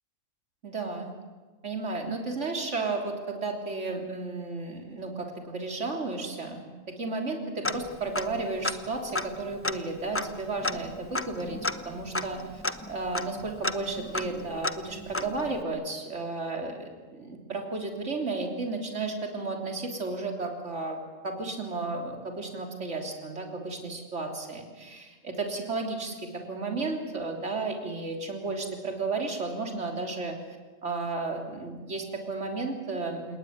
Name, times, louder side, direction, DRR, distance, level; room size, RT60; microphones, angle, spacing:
voice 1, 0.6-1.1 1.6-11.6 11.9-30.4 30.8-33.4, right 3 dB, 55° right, 3 dB, 3.7 m, -33 dB
Tick-tock, 7.6-8.4 8.6-8.7 9.1-15.6, left 2 dB, 10° left, 0.8 m, -33 dB
29.0 x 19.5 x 9.4 m, 1.3 s
omnidirectional pair, 1.5 m